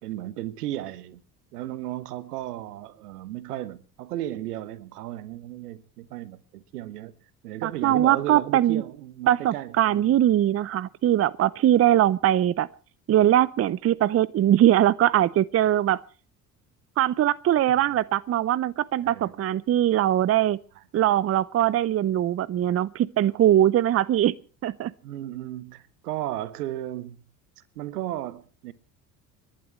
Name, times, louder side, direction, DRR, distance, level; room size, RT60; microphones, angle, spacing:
voice 1, 0.0-1.2 1.5-7.1 7.4-10.2 19.0-19.5 21.0-21.1 25.0-27.2 27.7-28.7, right 13 dB, 80° right, 1.1 m, -35 dB
voice 2, 7.6-8.8 9.3-12.7 13.1-16.0 17.0-20.6 20.9-24.3 24.6-24.9, right 12 dB, 30° right, 0.6 m, -21 dB
30.0 x 11.5 x 3.1 m
hypercardioid pair, 60°, 46 cm